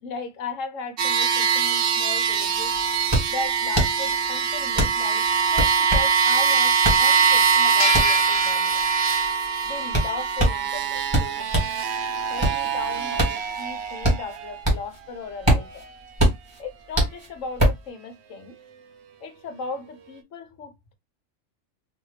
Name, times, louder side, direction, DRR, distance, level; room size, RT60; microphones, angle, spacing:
voice 1, 0.0-2.8 3.3-8.9 9.6-11.5 12.3-15.9 16.6-18.6 19.2-20.9, left 4 dB, 75° left, 1.2 m, -37 dB
sound 1, 1.0-14.6, right 6 dB, 60° right, 0.9 m, -23 dB
sound 2, 2.2-2.3 2.5-11.8 12.2-15.0 15.3-17.9, right 1 dB, 20° right, 1.6 m, -24 dB
sound 3, 7.8-10.7, left 3 dB, 55° left, 0.9 m, -31 dB
3.8 x 2.6 x 3.2 m
omnidirectional pair, 1.4 m